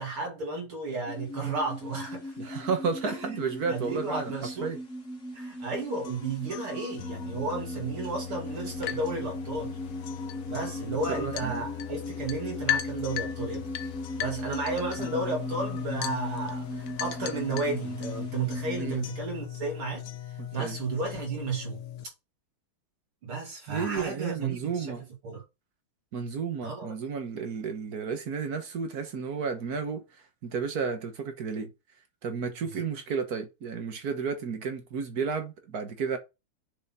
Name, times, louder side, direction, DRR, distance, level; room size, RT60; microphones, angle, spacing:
voice 1, 0.0-2.4 3.0-3.3 3.7-4.7 5.3-9.8 10.5-13.6 14.2-21.8 23.2-25.4 26.6-26.9, right 3 dB, 75° right, 3.3 m, -33 dB
sound 1, 1.1-19.0, equal, 35° left, 2.1 m, -39 dB
voice 2, 2.4-4.3 4.6-4.8 11.2-11.6 18.8-19.0 20.4-20.8 23.7-25.0 26.1-30.0 30.4-31.7 32.2-36.2, right 5 dB, 50° right, 1.5 m, -32 dB
sound 2, 6.0-22.0, left 11 dB, 80° left, 0.7 m, -40 dB
sound 3, 8.5-18.2, left 11 dB, 60° left, 1.2 m, -38 dB
6.6 x 5.3 x 6.1 m
omnidirectional pair, 2.4 m